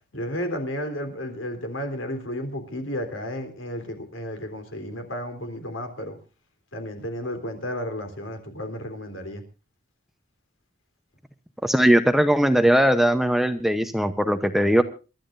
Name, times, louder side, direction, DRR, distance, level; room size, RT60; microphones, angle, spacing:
voice 1, 0.1-6.2 6.7-9.4, equal, 75° left, 3.6 m, -32 dB
voice 2, 11.6-14.8, equal, ahead, 0.8 m, -19 dB
28.0 x 12.5 x 2.6 m
head